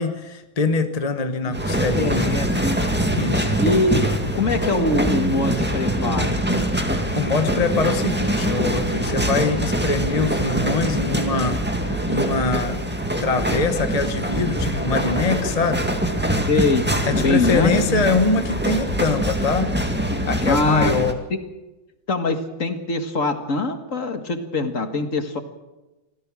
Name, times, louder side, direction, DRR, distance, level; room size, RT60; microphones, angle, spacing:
voice 1, 0.0-2.4 3.2-3.5 7.1-11.6 12.1-12.8 13.2-15.9 17.0-19.7 20.2-21.2, left 3 dB, 25° left, 7 dB, 0.9 m, -23 dB
sound 1, 1.5-21.1, right 1 dB, 5° right, 1.7 m, -23 dB
voice 2, 2.0-2.9 3.6-4.0 4.3-6.7 13.5-13.6 15.1-15.2 16.5-18.1 20.5-21.0 22.1-25.4, left 3 dB, 40° left, 7 dB, 1.9 m, -23 dB
25.5 x 16.5 x 6.3 m, 1.1 s
omnidirectional pair, 2.2 m